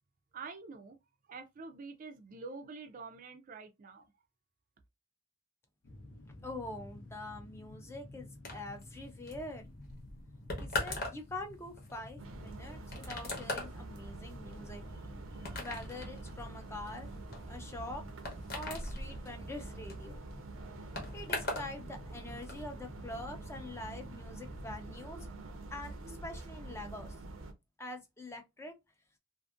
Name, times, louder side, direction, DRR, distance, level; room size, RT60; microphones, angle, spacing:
voice 1, 0.3-1.0 1.3-4.1, right 4 dB, 45° right, 0.4 m, -46 dB
sound 1, 5.8-24.8, left 1 dB, 75° left, 0.7 m, -51 dB
voice 2, 6.4-9.7 10.6-14.8 15.4-17.1 17.5-18.0 18.5-20.2 21.1-25.3 25.7-27.1 27.8-28.7, left 2 dB, 15° left, 0.5 m, -45 dB
sound 2, 8.4-21.7 22.0-22.6, left 2 dB, 50° left, 0.9 m, -41 dB
sound 3, 12.2-27.5, right 2 dB, 90° right, 0.6 m, -46 dB
2.5 x 2.5 x 2.4 m
head